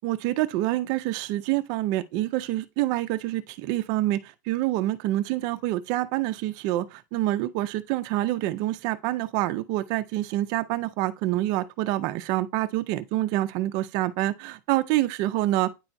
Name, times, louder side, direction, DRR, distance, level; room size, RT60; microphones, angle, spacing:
voice 1, 0.0-15.7, right 15 dB, 45° right, 0.5 m, -27 dB
8.9 x 4.4 x 2.6 m
supercardioid pair, 150°, 10 cm